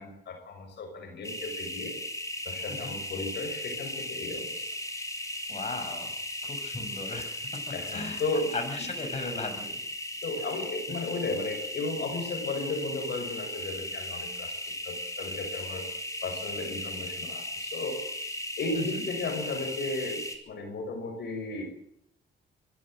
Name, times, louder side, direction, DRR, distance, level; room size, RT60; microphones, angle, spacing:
voice 1, 0.0-2.0 2.4-4.7 7.7-8.9 10.2-14.6 14.8-15.9 16.2-18.0 18.6-21.6, left 3 dB, 60° left, 4 dB, 5.7 m, -34 dB
sound 1, 1.2-20.4, left 1 dB, 15° left, 4.3 m, -37 dB
voice 2, 5.5-6.1 6.4-7.3 7.9-8.2 8.5-9.8 18.7-19.0, left 3 dB, 35° left, 4 dB, 6.7 m, -37 dB
23.5 x 15.0 x 7.6 m, 0.73 s
cardioid pair, 90°, 20 cm